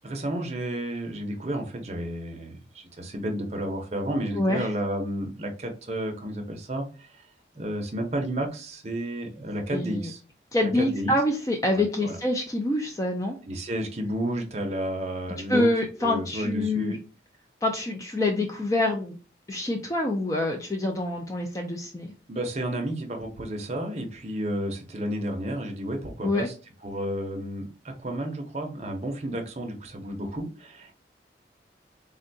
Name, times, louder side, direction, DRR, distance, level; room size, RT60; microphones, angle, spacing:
voice 1, 0.0-7.3 7.5-10.2 10.8-11.1 11.7-12.2 13.5-15.7 16.0-17.0 22.3-26.5 26.8-30.9, right 1 dB, 35° right, 3 dB, 0.6 m, -31 dB
voice 2, 4.3-4.7 9.7-10.1 10.5-13.4 15.5-17.0 17.6-19.2 19.5-22.1 26.2-26.5, left 1 dB, 20° left, 2 dB, 0.3 m, -26 dB
3.6 x 2.2 x 2.6 m, 0.35 s
head